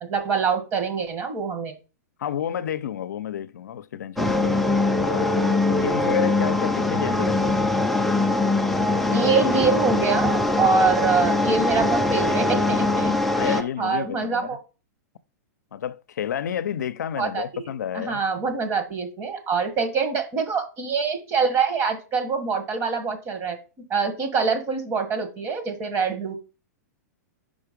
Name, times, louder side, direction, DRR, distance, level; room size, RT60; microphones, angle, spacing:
voice 1, 0.0-1.8 9.1-13.2 13.4-14.6 17.2-17.6 17.9-23.6 23.9-26.3, right 5 dB, 30° right, 1.4 m, -25 dB
voice 2, 2.2-4.6 5.0-7.6 13.3-14.5 15.7-18.2, left 9 dB, 85° left, 0.5 m, -30 dB
sound 1, 4.2-13.6, left 2 dB, ahead, 0.4 m, -22 dB
5.2 x 4.6 x 5.1 m
hypercardioid pair, 140°, 9 cm